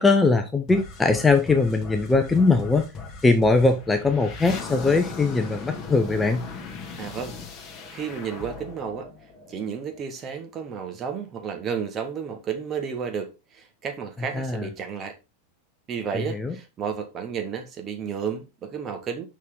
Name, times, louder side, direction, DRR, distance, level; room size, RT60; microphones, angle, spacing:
voice 1, 0.0-2.9 3.2-6.4 14.3-14.7 16.1-16.5, left 3 dB, 10° left, 0.8 m, -21 dB
sound 1, 0.7-10.0, left 4 dB, 25° left, 1.8 m, -38 dB
voice 2, 7.0-7.3 7.9-9.1 9.5-15.2 15.9-19.2, right 6 dB, 25° right, 1.6 m, -32 dB
6.5 x 5.5 x 3.7 m
figure-of-eight pair, 90°, 0 cm